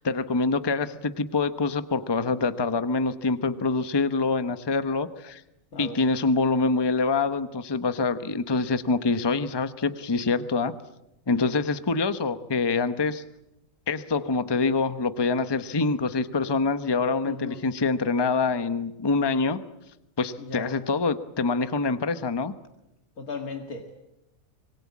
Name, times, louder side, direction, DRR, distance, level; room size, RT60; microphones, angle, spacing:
voice 1, 0.0-5.4 5.8-10.7 11.3-13.2 13.9-19.6 20.2-22.5, left 4 dB, 20° left, 11 dB, 0.9 m, -25 dB
voice 2, 17.2-17.6 20.4-20.8 23.2-23.9, left 4 dB, 85° left, 4 dB, 2.3 m, -36 dB
25.5 x 22.5 x 8.5 m, 0.87 s
omnidirectional pair, 1.5 m